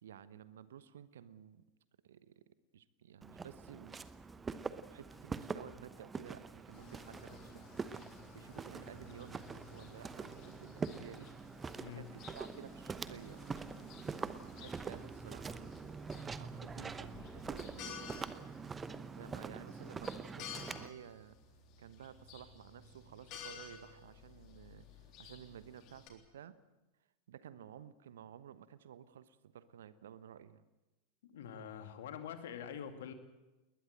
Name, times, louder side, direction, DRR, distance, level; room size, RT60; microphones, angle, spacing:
voice 1, 0.0-1.6 2.0-2.4 2.7-4.0 4.9-7.6 8.3-11.3 11.9-13.9 14.4-15.9 16.4-18.5 19.2-21.4 21.8-26.5 27.3-30.6, right 9 dB, 60° right, 15 dB, 1.0 m, -54 dB
Walk footsteps, 3.2-20.9, right 5 dB, 15° right, 0.9 m, -44 dB
sound 1, 4.0-9.2, left 2 dB, 10° left, 1.6 m, -65 dB
sound 2, 6.7-26.1, left 6 dB, 40° left, 3.6 m, -54 dB
voice 2, 11.8-12.1 31.2-33.1, left 8 dB, 55° left, 7 dB, 2.4 m, -45 dB
21.0 x 20.0 x 7.9 m, 1.1 s
figure-of-eight pair, 90°, 0 cm